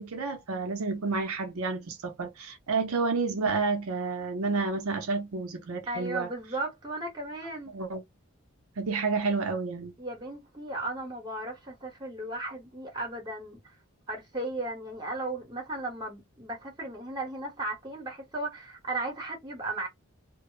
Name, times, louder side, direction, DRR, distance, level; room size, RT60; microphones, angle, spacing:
voice 1, 0.0-6.3 7.7-8.0 8.8-9.9, right 4 dB, 75° right, 0.6 m, -30 dB
voice 2, 5.9-7.7 10.0-13.6 14.1-19.9, right 2 dB, 20° right, 0.9 m, -35 dB
2.0 x 2.0 x 3.0 m
head